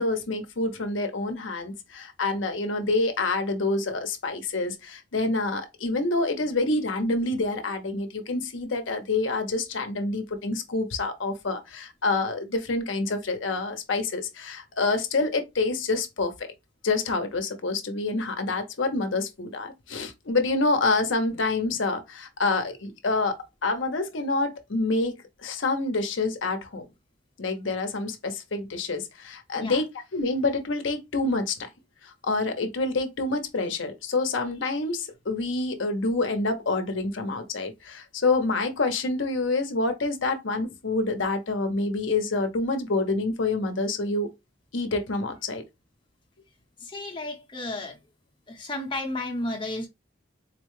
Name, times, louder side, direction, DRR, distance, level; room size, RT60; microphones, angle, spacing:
voice 1, 0.0-16.3 16.8-25.1 25.4-26.9 27.4-31.5 32.2-44.3 44.7-45.6, left 3 dB, 75° left, 0.8 m, -27 dB
voice 2, 46.8-48.0 48.5-49.9, left 2 dB, 25° left, 0.8 m, -32 dB
4.1 x 2.1 x 3.1 m
head